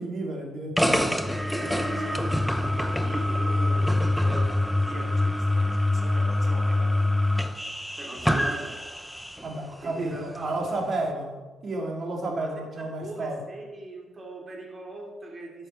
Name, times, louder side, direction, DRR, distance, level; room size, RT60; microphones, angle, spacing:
voice 1, 0.0-1.1 9.4-13.4, right 2 dB, 50° right, 0 dB, 3.0 m, -32 dB
sound 1, 0.8-9.5, left 1 dB, ahead, 0.8 m, -25 dB
voice 2, 1.0-7.1 7.9-8.8 10.0-10.8 12.2-15.7, right 2 dB, 30° right, 0 dB, 2.7 m, -40 dB
12.0 x 7.6 x 4.6 m, 1.2 s
cardioid pair, 90°, 0 cm